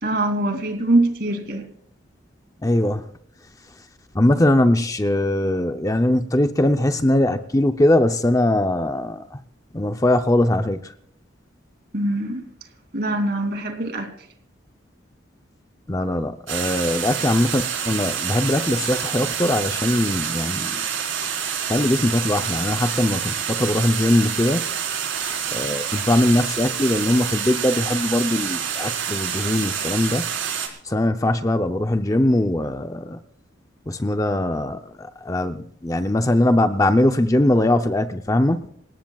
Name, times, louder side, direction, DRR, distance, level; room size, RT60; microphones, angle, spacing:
voice 1, 0.0-1.7 11.9-12.4 12.9-14.1, right 1 dB, 55° right, 6 dB, 2.8 m, -23 dB
voice 2, 2.6-3.1 4.1-9.4 9.7-10.9 15.9-20.8 21.7-24.7 25.5-30.3 30.8-33.2 33.9-38.7, left 1 dB, 15° left, 7 dB, 0.6 m, -21 dB
sound 1, 16.5-30.7, right 8 dB, 85° right, 4.4 m, -27 dB
27.5 x 18.0 x 2.4 m, 0.68 s
head